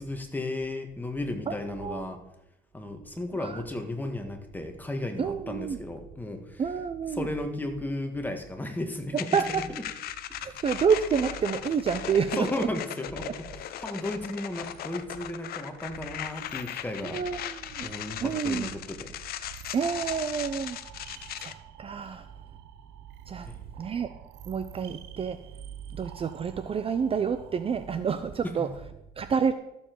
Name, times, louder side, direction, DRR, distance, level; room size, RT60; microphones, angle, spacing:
voice 1, 0.0-2.2 2.7-6.6 7.1-9.4 9.7-9.8 10.4-10.6 12.4-13.5 13.8-17.2 17.8-19.1 23.4-23.6 28.4-28.7, left 1 dB, 10° left, 5 dB, 1.7 m, -34 dB
voice 2, 1.5-2.1 3.4-3.6 5.2-5.8 6.6-7.3 9.1-9.6 10.4-12.7 17.0-17.9 18.2-18.7 19.7-20.8 21.4-22.3 23.3-23.5 23.8-24.1 24.4-25.4 25.9-28.7 29.2-29.5, right 6 dB, 35° right, 11 dB, 0.6 m, -28 dB
sound 1, 9.2-21.5, left 11 dB, 65° left, 0.7 m, -38 dB
sound 2, 14.0-27.9, right 11 dB, 85° right, 0.6 m, -50 dB
13.5 x 7.1 x 4.6 m, 0.86 s
cardioid pair, 110°, 17 cm